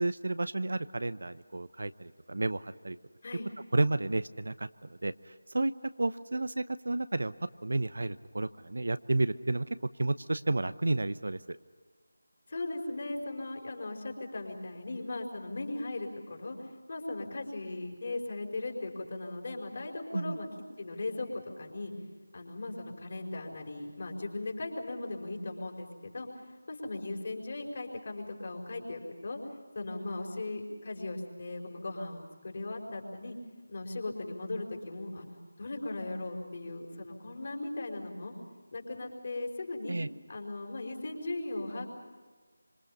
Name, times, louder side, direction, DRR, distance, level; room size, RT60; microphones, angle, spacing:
voice 1, 0.0-3.0 3.7-4.7 5.0-5.1 5.5-5.7 6.0-7.3 7.6-9.7 10.0-11.4 20.1-20.4 39.9-40.1, right 2 dB, 55° right, 14 dB, 0.8 m, -31 dB
voice 2, 12.5-16.6 16.9-20.5 20.8-21.9 22.3-26.3 26.7-29.4 29.7-33.4 33.7-35.3 35.6-38.3 38.7-40.0 40.3-41.9, left 2 dB, 40° left, 2 dB, 5.1 m, -38 dB
26.5 x 26.0 x 5.6 m, 1.4 s
figure-of-eight pair, 165°, 0 cm